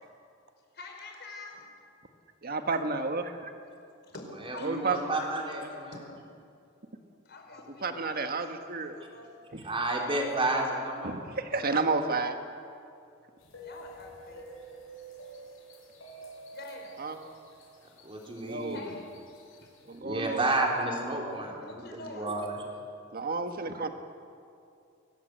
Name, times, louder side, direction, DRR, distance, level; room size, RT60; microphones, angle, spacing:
voice 1, 0.7-1.6 4.0-5.3 5.7-6.0 7.2-8.5 8.8-9.3 9.6-9.7 13.6-14.6 16.5-17.0 18.1-18.4 18.7-19.1 19.3-19.7 20.1-20.2 21.7-22.3, left 3 dB, 55° left, 2 dB, 5.0 m, -46 dB
voice 2, 2.4-3.5 4.6-5.2 5.5-5.7 7.8-9.0 9.5-9.6 11.0-12.4 17.0-17.2 18.4-18.8 19.9-20.5 23.1-23.9, right 3 dB, 50° right, 6 dB, 1.6 m, -31 dB
voice 3, 4.4-6.0 9.6-11.1 18.0-18.9 20.0-22.6, right 2 dB, 25° right, 0 dB, 4.1 m, -31 dB
sound 1, 13.4-20.0, right 2 dB, 90° left, 6.4 m, -49 dB
23.5 x 19.0 x 8.0 m, 2.5 s
head